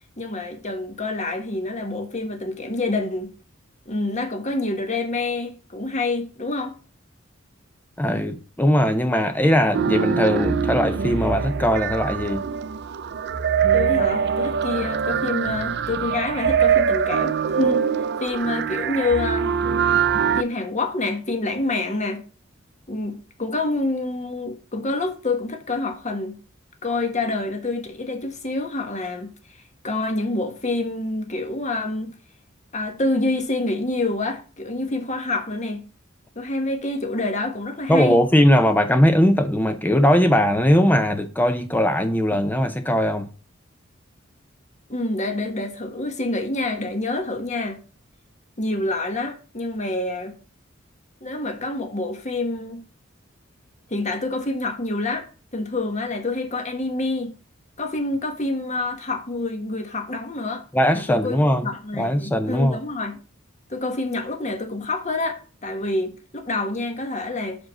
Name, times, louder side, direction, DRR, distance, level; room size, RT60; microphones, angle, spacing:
voice 1, 0.2-3.3 3.9-6.7 13.7-17.9 18.2-19.5 20.3-22.2 22.9-26.4 26.8-29.3 29.8-32.1 32.7-35.8 36.3-38.2 44.9-47.8 48.6-50.3 51.2-52.8 53.9-55.3 55.5-57.3 57.8-60.7 60.9-61.4 61.6-63.2 63.7-67.7, left 2 dB, 40° left, 1.3 m, -27 dB
voice 2, 8.0-12.5 37.9-43.3 60.7-61.7 61.9-62.8, equal, 10° left, 0.5 m, -19 dB
sound 1, 9.7-20.4, right 7 dB, 60° right, 0.5 m, -23 dB
6.2 x 5.0 x 5.4 m
head